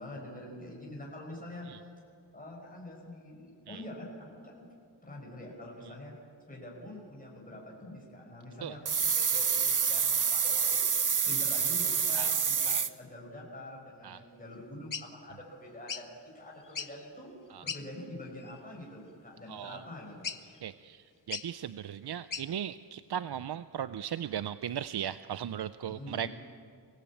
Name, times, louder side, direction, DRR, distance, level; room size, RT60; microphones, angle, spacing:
voice 1, 0.0-1.7 2.3-4.7 5.0-6.1 6.5-10.8 11.2-16.1 16.3-17.3 17.6-20.3 25.9-26.3, left 1 dB, 20° left, -3 dB, 5.3 m, -45 dB
sound 1, 8.9-12.9, right 6 dB, 45° right, 0.9 m, -27 dB
sound 2, 14.9-15.1 15.9-16.1 16.6-17.0 17.7-17.8 18.4-18.6 20.2-20.6 21.3-21.5 22.3-22.5, left 6 dB, 45° left, 1.0 m, -38 dB
voice 2, 19.5-19.8 20.6-26.3, right 9 dB, 65° right, 13 dB, 0.6 m, -37 dB
24.5 x 18.5 x 8.6 m, 2.4 s
wide cardioid pair, 130°, 43 cm